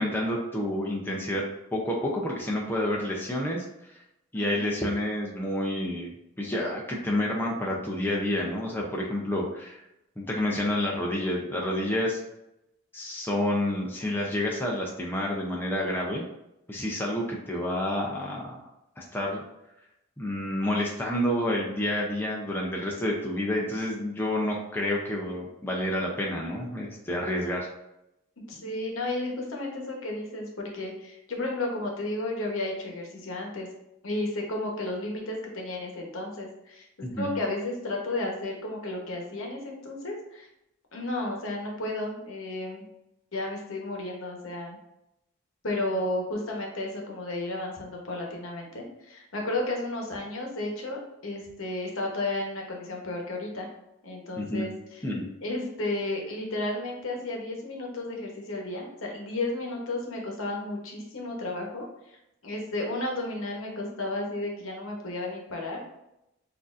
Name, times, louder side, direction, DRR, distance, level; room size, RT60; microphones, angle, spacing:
voice 1, 0.0-1.4 1.7-3.7 3.9-4.0 4.3-6.1 6.4-9.8 10.2-12.2 12.9-16.2 16.7-18.6 19.0-19.4 20.2-27.7 37.0-37.3 54.4-54.7 55.0-55.2, left 1 dB, 10° left, -2 dB, 0.5 m, -29 dB
voice 2, 4.3-4.8 28.5-33.7 34.0-40.5 40.9-42.8 43.3-44.8 45.6-53.7 54.0-55.0 55.4-62.2 62.4-65.8, left 2 dB, 65° left, 0 dB, 1.0 m, -33 dB
6.3 x 2.6 x 2.5 m, 0.86 s
head